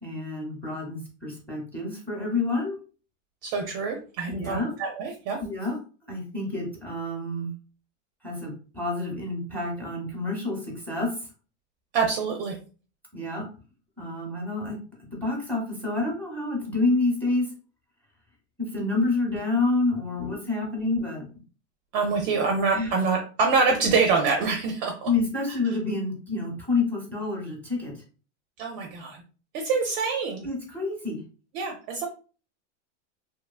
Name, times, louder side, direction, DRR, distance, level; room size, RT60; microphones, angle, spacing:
voice 1, 0.0-2.8 4.3-4.7 5.4-5.8 6.1-7.5 8.2-11.1 13.1-13.4 14.0-14.8 15.1-17.5 18.7-21.2 22.7-23.0 25.0-27.9 30.4-31.2, left 3 dB, 5° left, -1 dB, 0.8 m, -28 dB
voice 2, 3.4-5.4 11.9-12.6 20.1-20.3 21.9-25.1 28.6-29.2 29.5-30.5 31.5-32.0, right 4 dB, 35° right, 3 dB, 0.4 m, -25 dB
2.8 x 2.2 x 2.3 m, 0.36 s
supercardioid pair, 140°, 36 cm